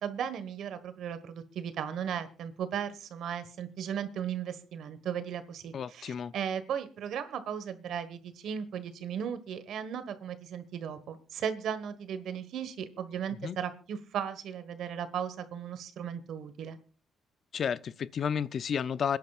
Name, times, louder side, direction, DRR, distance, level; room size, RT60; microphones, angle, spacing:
voice 1, 0.0-16.8, right 8 dB, 75° right, 1.4 m, -36 dB
voice 2, 5.7-6.3 13.4-13.6 17.5-19.2, left 7 dB, 55° left, 0.5 m, -32 dB
27.0 x 10.5 x 2.4 m
cardioid pair, 90°, 0 cm